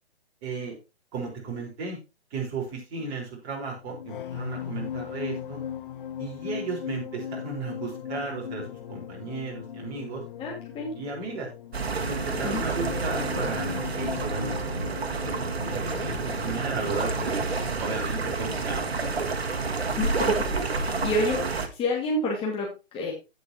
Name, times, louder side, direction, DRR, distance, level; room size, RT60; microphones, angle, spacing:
voice 1, 0.4-0.7 1.1-2.0 2.3-5.6 6.2-10.2 11.0-11.5 12.0-14.8 15.2-17.3 17.8-18.9, right 4 dB, 30° right, -1 dB, 4.4 m, -35 dB
sound 1, 3.7-20.4 20.6-21.0, left 9 dB, 55° left, 1.2 m, -38 dB
voice 2, 10.4-11.0 12.4-12.6 20.0-23.1, left 2 dB, 15° left, -2 dB, 2.2 m, -29 dB
sound 2, 11.7-21.7, right 4 dB, 70° right, 1.6 m, -29 dB
16.5 x 5.5 x 2.9 m, 0.27 s
figure-of-eight pair, 130°, 33 cm